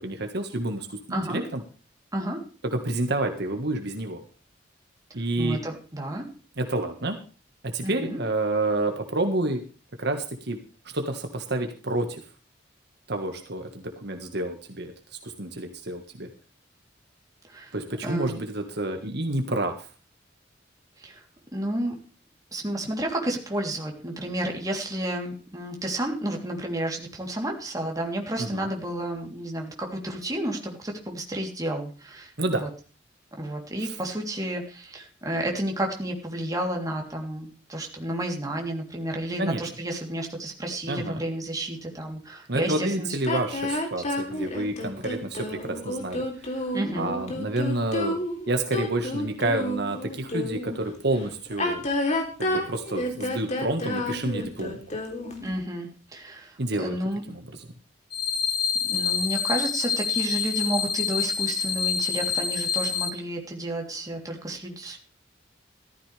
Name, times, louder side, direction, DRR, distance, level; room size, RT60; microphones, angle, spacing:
voice 1, 0.0-1.6 2.6-4.2 5.1-5.6 6.6-7.2 7.6-9.6 10.0-10.6 10.9-12.2 13.1-14.9 15.2-16.3 17.7-19.9 28.4-28.7 32.4-32.7 33.8-34.0 39.4-39.7 40.9-41.2 42.5-46.6 46.9-48.2 48.5-51.8 52.4-54.8 56.6-57.0 57.3-57.4, right 2 dB, 65° right, 5 dB, 1.7 m, -29 dB
voice 2, 1.1-1.4 2.1-2.4 5.4-6.3 7.8-8.2 17.5-17.7 18.0-18.4 21.0-21.2 21.5-22.0 22.5-32.7 33.4-43.1 46.7-47.1 55.4-57.2 58.8-65.0, right 1 dB, 20° right, 1 dB, 3.3 m, -31 dB
sound 1, 43.2-50.8 51.5-55.5, left 1 dB, 40° left, 3.4 m, -30 dB
sound 2, 58.1-63.1, left 6 dB, 60° left, 2.3 m, -27 dB
14.5 x 14.0 x 3.4 m, 0.38 s
head